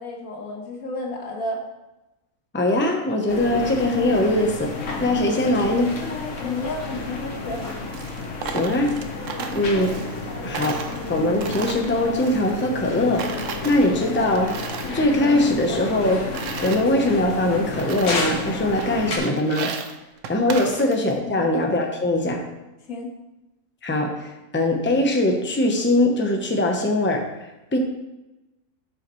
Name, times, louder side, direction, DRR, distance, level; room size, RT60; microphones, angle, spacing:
voice 1, 0.0-1.6 6.4-7.7 9.4-9.6 20.6-20.7 21.2-21.5 22.9-23.1, left 2 dB, 85° left, 1 dB, 1.8 m, -32 dB
voice 2, 2.5-6.0 8.5-9.2 9.5-10.0 10.4-14.7 14.9-16.4 16.6-19.7 20.3-22.4 23.8-27.8, left 1 dB, 10° left, 2 dB, 0.8 m, -22 dB
sound 1, 3.3-19.2, left 3 dB, 60° left, 1.5 m, -31 dB
Coin (dropping), 7.5-10.3 10.5-12.9 13.2-15.0 15.3-16.8 17.4-17.5 17.8-18.4 18.8-21.2, right 6 dB, 65° right, 1.0 m, -35 dB
11.0 x 5.7 x 3.2 m, 1.0 s
omnidirectional pair, 1.5 m